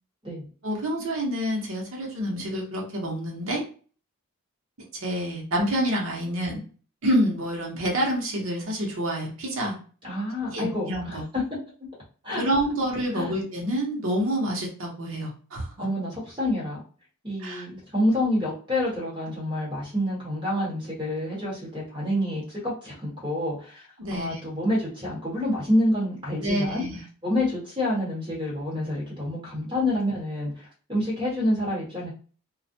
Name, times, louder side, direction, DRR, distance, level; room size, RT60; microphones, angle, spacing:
voice 1, 0.6-3.6 4.9-6.6 7.0-9.7 10.5-11.2 12.4-15.9 17.4-17.6 24.0-24.4 26.4-27.0, equal, 70° right, -1 dB, 0.8 m, -27 dB
voice 2, 10.0-11.2 12.2-12.4 13.1-13.3 15.8-16.8 17.2-23.9 24.1-26.8 27.2-32.1, left 1 dB, 20° right, -5 dB, 1.1 m, -28 dB
2.3 x 2.1 x 2.6 m, 0.40 s
head